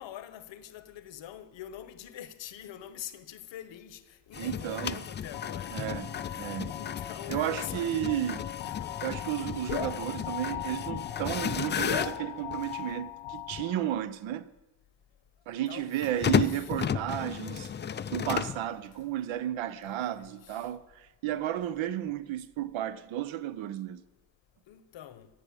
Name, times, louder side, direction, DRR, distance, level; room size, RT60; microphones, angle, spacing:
voice 1, 0.0-5.9 6.2-8.4 8.6-9.1 9.8-10.0 15.7-16.7 18.2-18.3 19.8-20.7 24.7-25.3, left 11 dB, 65° left, 1.0 m, -45 dB
sound 1, 4.3-12.8 13.5-13.6 16.0-18.7, left 8 dB, 25° left, 0.3 m, -34 dB
voice 2, 4.4-5.0 5.7-6.1 6.4-6.7 7.3-8.5 9.0-14.5 15.5-17.7 18.1-24.0, right 12 dB, 70° right, 0.8 m, -33 dB
sound 2, 5.3-14.0, left 12 dB, 90° left, 1.0 m, -39 dB
16.0 x 6.3 x 7.4 m
cardioid pair, 95°, 48 cm